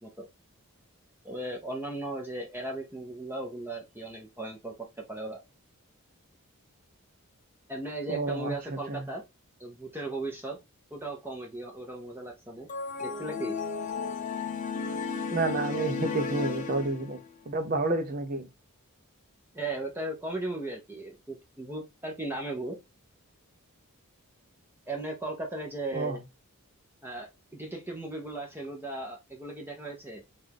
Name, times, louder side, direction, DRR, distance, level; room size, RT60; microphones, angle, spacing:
voice 1, 1.2-4.7 5.1-5.4 7.7-9.2 9.6-10.6 10.9-12.7 13.0-13.6 19.5-22.8 24.9-26.2 27.0-30.2, right 2 dB, 10° right, 0.9 m, -37 dB
voice 2, 8.1-9.1 15.3-17.2 17.5-18.5 25.9-26.2, right 2 dB, 40° right, 0.7 m, -30 dB
sound 1, 12.7-17.4, left 5 dB, 35° left, 0.7 m, -34 dB
5.1 x 2.5 x 3.4 m
head